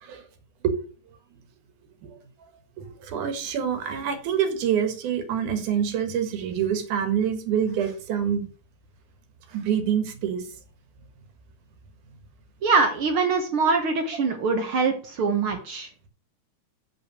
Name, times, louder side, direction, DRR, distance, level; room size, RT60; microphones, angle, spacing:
voice 1, 2.8-8.5 9.5-10.4, right 8 dB, 90° right, 8 dB, 2.9 m, -26 dB
voice 2, 12.6-15.9, right 4 dB, 55° right, 5 dB, 1.6 m, -23 dB
8.1 x 5.4 x 6.2 m, 0.40 s
omnidirectional pair, 3.4 m